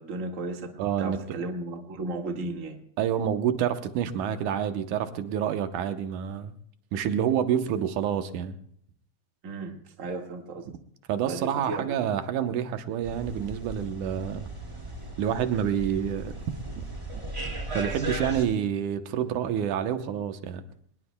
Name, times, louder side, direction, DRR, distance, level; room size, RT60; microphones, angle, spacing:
voice 1, 0.0-0.7 1.0-2.8 9.4-10.7 11.2-12.1, right 2 dB, 30° right, 3 dB, 1.7 m, -35 dB
voice 2, 0.8-1.2 3.0-6.5 6.9-8.6 11.1-14.5 15.2-16.3 16.8-16.9 17.7-20.6, right 9 dB, 85° right, 9 dB, 2.5 m, -28 dB
sound 1, 13.0-18.4, right 1 dB, 10° right, 1.7 m, -37 dB
23.5 x 20.0 x 2.2 m, 0.66 s
omnidirectional pair, 3.5 m